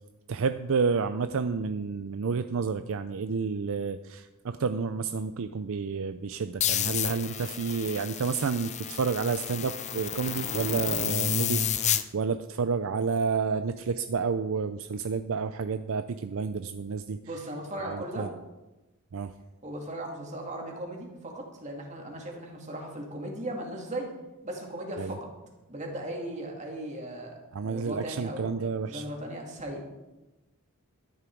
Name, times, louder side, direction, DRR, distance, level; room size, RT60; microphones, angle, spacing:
voice 1, 0.3-17.2 17.8-18.3 19.1-19.3 25.0-25.1 27.5-29.0, right 5 dB, 65° right, 10 dB, 0.5 m, -30 dB
sound 1, 6.6-12.0, left 9 dB, 30° left, 0.6 m, -30 dB
voice 2, 17.2-18.3 19.6-24.1 24.4-25.3 25.7-28.5 28.9-29.8, right 1 dB, 30° right, 1 dB, 2.4 m, -37 dB
12.5 x 10.5 x 4.7 m, 1.0 s
head